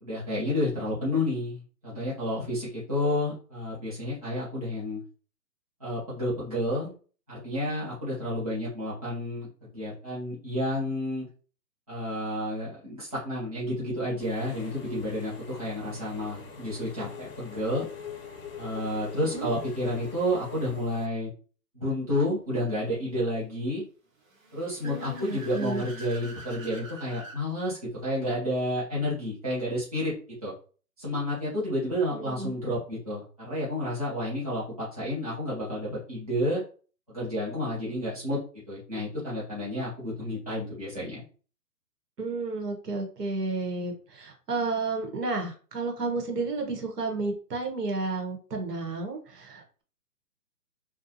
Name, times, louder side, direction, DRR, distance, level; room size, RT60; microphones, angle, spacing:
voice 1, 0.0-5.0 5.8-6.9 7.3-11.3 11.9-17.9 18.6-21.3 21.7-23.8 24.5-30.1 30.4-30.5 31.0-36.6 37.1-38.4 38.7-41.2, left 1 dB, 25° right, -9 dB, 0.7 m, -30 dB
voice 2, 1.0-1.3 19.3-19.5 24.8-25.8 32.1-32.5 42.2-49.8, right 3 dB, 80° right, 2 dB, 1.1 m, -32 dB
Engine / Mechanisms, 14.2-21.1, left 6 dB, 60° left, 0.7 m, -43 dB
Car / Accelerating revving vroom, 24.2-27.4, right 2 dB, 55° right, 1.0 m, -45 dB
2.6 x 2.3 x 2.7 m, 0.39 s
hypercardioid pair, 180°, 47 cm